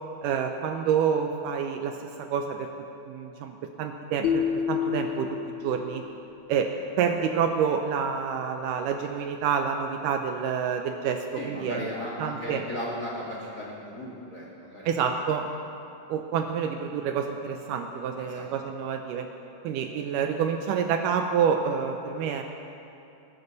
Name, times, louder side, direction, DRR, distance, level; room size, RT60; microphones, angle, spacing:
voice 1, 0.2-2.7 3.1-5.4 5.6-6.0 6.5-6.7 7.0-11.9 12.2-12.6 14.9-15.5 16.1-19.3 19.6-22.4, right 7 dB, 80° right, 5 dB, 2.1 m, -28 dB
sound 1, 4.2-6.4, left 8 dB, 90° left, 1.6 m, -29 dB
voice 2, 11.4-14.9 18.3-18.5, left 1 dB, 30° left, -5 dB, 2.0 m, -36 dB
20.0 x 12.5 x 4.0 m, 2.7 s
omnidirectional pair, 4.1 m